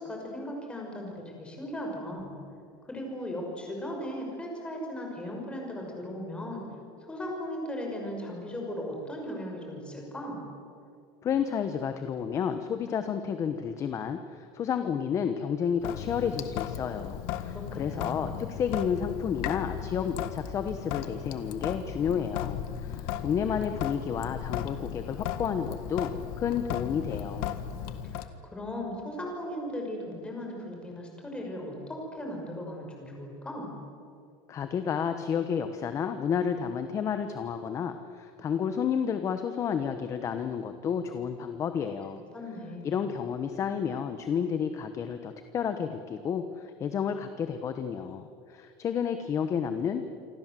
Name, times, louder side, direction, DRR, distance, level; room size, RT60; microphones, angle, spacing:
voice 1, 0.0-2.3 2.8-6.6 7.1-10.4 17.5-18.3 28.1-33.8 42.3-43.0, left 1 dB, 10° left, 1 dB, 5.9 m, -37 dB
voice 2, 11.2-26.1 26.4-27.5 34.5-42.2 42.8-50.1, left 7 dB, 25° left, 8 dB, 1.1 m, -31 dB
Sink (filling or washing) / Drip, 15.8-28.3, left 10 dB, 65° left, 1.8 m, -36 dB
28.0 x 24.5 x 7.7 m, 2.4 s
cardioid pair, 170°, 12 cm